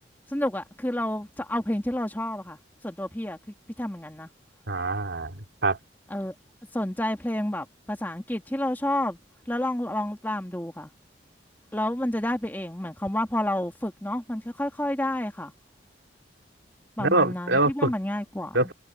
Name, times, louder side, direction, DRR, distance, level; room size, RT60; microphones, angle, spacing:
voice 1, 0.3-2.6 2.8-3.4 3.8-4.3 6.1-6.3 6.7-9.2 9.5-10.9 11.7-15.5 17.0-18.7, left 1 dB, 10° left, 1.8 m, -29 dB
voice 2, 4.7-5.8 17.0-17.9 18.5-18.7, right 2 dB, 85° right, 2.9 m, -24 dB
head